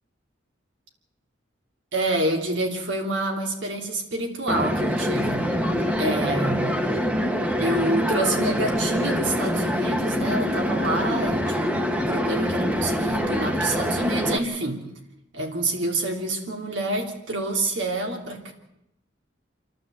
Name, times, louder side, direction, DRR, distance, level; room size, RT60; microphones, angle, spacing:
voice 1, 1.9-5.5 6.0-6.8 7.6-14.8 15.3-18.5, right 2 dB, 80° right, 1 dB, 3.3 m, -27 dB
sound 1, 4.5-14.4, equal, 10° right, 1.4 m, -25 dB
28.5 x 12.0 x 7.9 m, 0.84 s
head